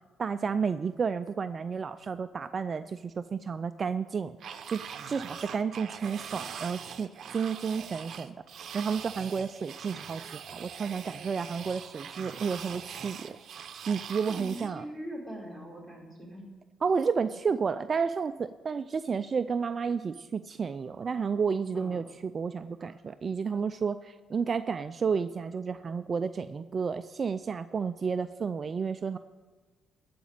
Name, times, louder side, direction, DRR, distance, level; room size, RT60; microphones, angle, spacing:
voice 1, 0.2-4.4 4.7-4.8 5.1-8.4 8.7-13.4 13.9-14.8 16.8-29.2, right 5 dB, 40° right, 11 dB, 0.4 m, -31 dB
sound 1, 4.4-14.7, right 7 dB, 65° right, 0.8 m, -42 dB
voice 2, 14.3-16.4 21.7-22.0, equal, 5° left, -3 dB, 4.6 m, -41 dB
14.0 x 5.1 x 8.7 m, 1.3 s
cardioid pair, 90°, 0 cm